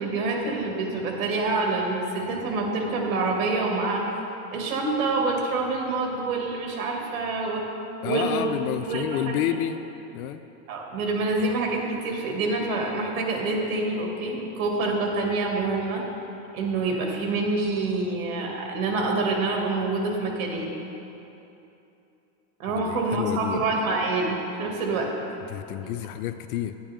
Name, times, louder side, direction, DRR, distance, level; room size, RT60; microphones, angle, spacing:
voice 1, 0.0-4.0 4.5-7.7 8.0-8.5 8.9-9.3 10.7-16.0 16.5-20.7 22.6-25.1, right 3 dB, 70° right, 0 dB, 1.9 m, -26 dB
voice 2, 8.0-9.9 10.1-10.4 22.7-23.7 25.5-26.7, left 11 dB, 90° left, 11 dB, 0.6 m, -29 dB
10.5 x 9.3 x 3.4 m, 2.9 s
supercardioid pair, 170°, 42 cm